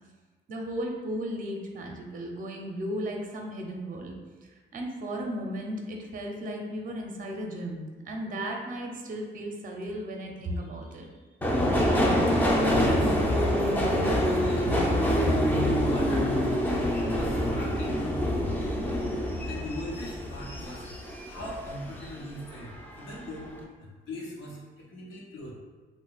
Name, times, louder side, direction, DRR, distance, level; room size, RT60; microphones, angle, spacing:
voice 1, 0.5-4.1 4.7-11.1, equal, 45° right, 1 dB, 0.6 m, -35 dB
Subway metro underground, 11.4-22.1 22.5-23.2 23.5-23.6, equal, 10° left, 0.5 m, -26 dB
voice 2, 12.3-13.2 13.9-15.0 15.3-18.6 19.4-23.5 23.8-25.5, left 1 dB, 80° left, -3 dB, 0.9 m, -40 dB
2.8 x 2.1 x 4.0 m, 1.3 s
cardioid pair, 90°, 20 cm